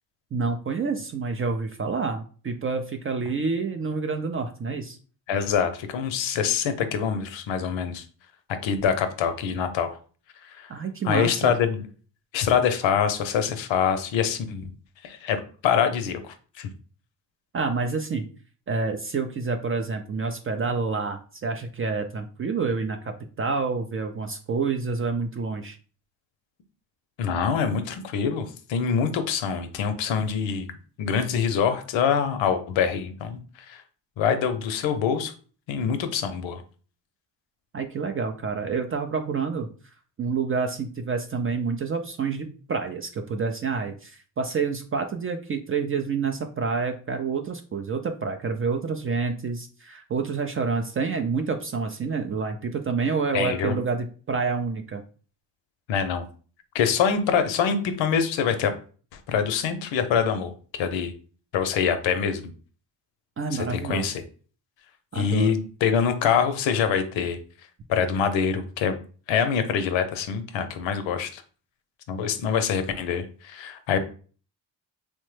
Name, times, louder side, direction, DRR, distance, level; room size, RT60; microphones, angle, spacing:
voice 1, 0.3-5.0 10.7-11.5 17.5-18.3 18.7-25.8 37.7-39.7 40.2-55.0 63.4-64.1 65.1-65.5, right 4 dB, 30° right, 5 dB, 0.4 m, -28 dB
voice 2, 5.3-8.0 8.6-10.0 10.4-10.7 11.0-11.8 12.3-14.7 15.0-15.4 15.6-16.7 27.2-30.7 31.0-33.4 33.7-33.8 34.2-35.3 35.7-36.6 53.3-53.8 55.9-56.3 56.7-58.7 59.1-61.1 61.5-62.4 63.5-64.2 65.1-67.4 67.9-69.0 69.3-71.4 72.1-74.0, left 7 dB, 75° left, 9 dB, 0.6 m, -25 dB
3.1 x 2.1 x 3.1 m, 0.40 s
supercardioid pair, 60°, 46 cm